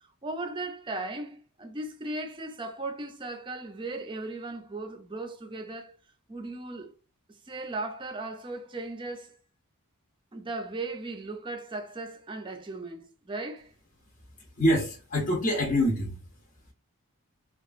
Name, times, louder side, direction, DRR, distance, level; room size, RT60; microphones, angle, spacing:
voice 1, 0.0-6.0 6.3-6.9 7.5-9.4 10.3-13.7, right 2 dB, 20° right, 0.5 m, -37 dB
voice 2, 14.6-16.2, equal, 40° left, 0.7 m, -25 dB
2.8 x 2.3 x 2.5 m
head